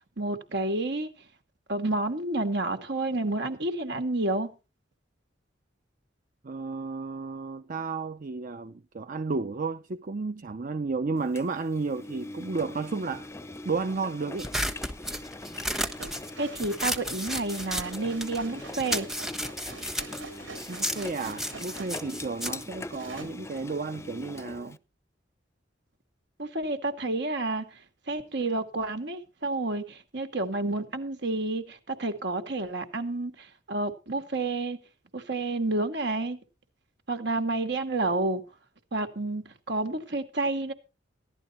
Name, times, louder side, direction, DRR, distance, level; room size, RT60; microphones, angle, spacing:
voice 1, 0.2-1.3 1.7-4.5 16.4-19.1 26.4-34.8 35.1-36.4 37.1-38.4 38.9-40.7, right 2 dB, 65° right, 2.4 m, -30 dB
voice 2, 6.4-13.3 13.6-14.5 20.7-24.8, right 4 dB, 45° right, 0.6 m, -32 dB
Engine, 11.3-24.8, left 2 dB, 15° left, 0.6 m, -42 dB
sound 1, 14.4-18.4 18.7-23.5, equal, ahead, 1.2 m, -33 dB
sound 2, 16.0-22.6 22.9-23.2, right 3 dB, 85° right, 4.7 m, -46 dB
16.5 x 11.5 x 4.4 m
head